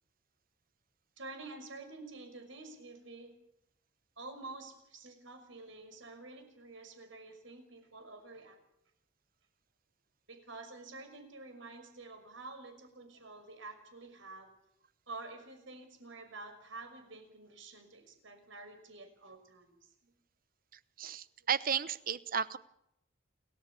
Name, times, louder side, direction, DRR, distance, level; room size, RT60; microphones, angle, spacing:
voice 1, 1.2-3.3 4.2-8.6 10.3-14.5 15.1-20.2, right 3 dB, 70° right, 7 dB, 5.9 m, -49 dB
voice 2, 21.0-22.6, right 7 dB, 45° right, 15 dB, 0.9 m, -33 dB
29.0 x 13.5 x 8.5 m, 0.79 s
head